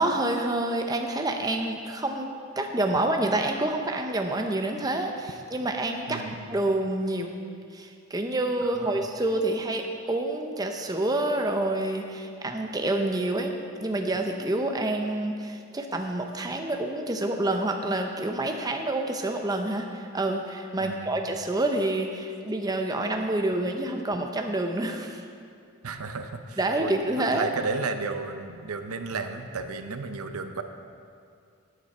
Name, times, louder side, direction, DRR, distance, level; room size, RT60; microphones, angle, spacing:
voice 1, 0.0-2.3 2.6-6.2 6.5-7.3 7.7-13.5 13.8-25.2 26.6-27.5, right 2 dB, 15° right, 3 dB, 0.6 m, -28 dB
voice 2, 6.1-6.5 8.6-9.0 20.8-21.2 25.8-26.9 27.2-30.6, right 4 dB, 85° right, 8 dB, 0.7 m, -33 dB
13.0 x 9.2 x 4.3 m, 2.3 s
head